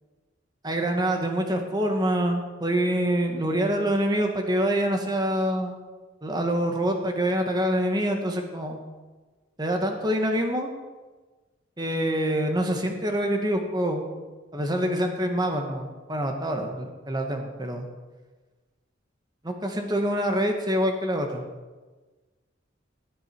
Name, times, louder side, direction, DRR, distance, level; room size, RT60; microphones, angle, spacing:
voice 1, 0.6-5.8 6.2-8.8 9.6-10.7 11.8-14.0 14.5-17.9 19.4-21.4, equal, 20° right, 4 dB, 1.5 m, -26 dB
18.0 x 9.4 x 4.5 m, 1.3 s
head